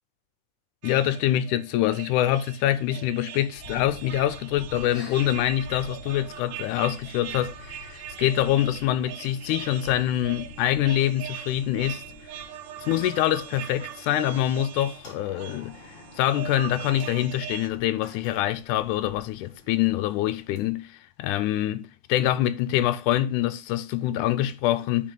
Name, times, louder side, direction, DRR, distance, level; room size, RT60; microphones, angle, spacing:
voice 1, 0.8-12.3 12.8-25.1, left 13 dB, 80° left, 2.0 m, -25 dB
sound 1, 0.8-17.7, right 11 dB, 75° right, 2.0 m, -41 dB
sound 2, 3.5-20.7, left 4 dB, 40° left, 2.4 m, -48 dB
12.0 x 4.2 x 3.9 m
omnidirectional pair, 3.7 m